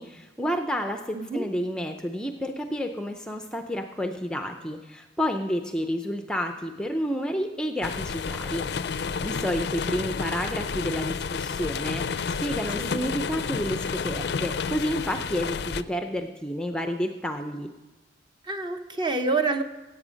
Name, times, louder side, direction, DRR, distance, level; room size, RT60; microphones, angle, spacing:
voice 1, 0.0-8.6 8.9-17.7, equal, 5° left, 5 dB, 0.5 m, -30 dB
voice 2, 1.1-1.5 12.8-13.1 18.4-19.6, right 3 dB, 25° right, 6 dB, 0.8 m, -27 dB
sound 1, 7.8-15.8, left 5 dB, 60° left, 0.4 m, -30 dB
16.0 x 8.3 x 5.1 m, 1.2 s
head